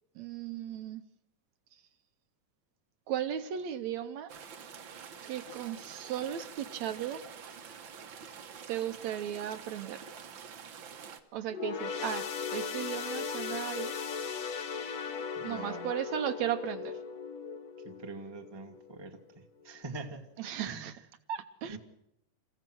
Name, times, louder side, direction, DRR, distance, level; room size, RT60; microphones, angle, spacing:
voice 1, 0.2-1.0 3.1-4.3 5.3-7.2 8.7-10.0 11.3-14.0 15.4-17.0 20.4-20.9 21.3-21.8, right 10 dB, 70° right, 10 dB, 2.0 m, -36 dB
sound 1, 4.3-11.2, right 7 dB, 55° right, 1.4 m, -47 dB
sound 2, 11.5-19.2 19.6-19.8 20.7-20.8, left 6 dB, 55° left, 2.8 m, -38 dB
voice 2, 15.3-15.9 17.8-19.2 19.6-20.3 20.6-20.9 21.7-21.8, right 3 dB, 20° right, 4 dB, 0.6 m, -43 dB
28.5 x 15.5 x 6.1 m, 0.81 s
omnidirectional pair, 3.7 m